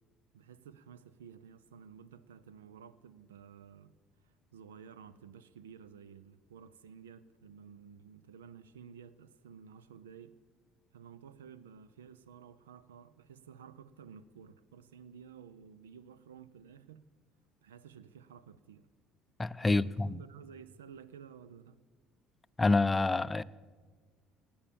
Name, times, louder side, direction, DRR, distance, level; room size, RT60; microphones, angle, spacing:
voice 1, 0.3-3.9 4.2-10.4 10.9-17.0 17.6-18.9 19.6-21.8, right 7 dB, 85° right, 0.5 m, -53 dB
voice 2, 19.4-20.2 22.6-23.4, left 3 dB, 20° left, 0.5 m, -27 dB
18.0 x 8.7 x 7.3 m
hypercardioid pair, 60°, 0 cm